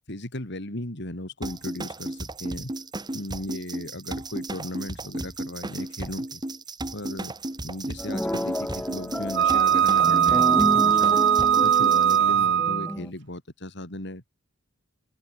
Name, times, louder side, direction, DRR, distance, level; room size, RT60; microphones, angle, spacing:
voice 1, 0.1-2.7 3.1-6.4 6.9-7.3 7.6-11.2 11.6-14.2, left 1 dB, 60° left, 4.3 m, -36 dB
sound 1, 1.4-12.2, right 1 dB, 20° right, 1.9 m, -34 dB
sound 2, 8.0-13.1, left 1 dB, 5° left, 0.6 m, -31 dB
Wind instrument woodwind instrument, 9.3-12.9, right 9 dB, 60° right, 0.5 m, -20 dB
head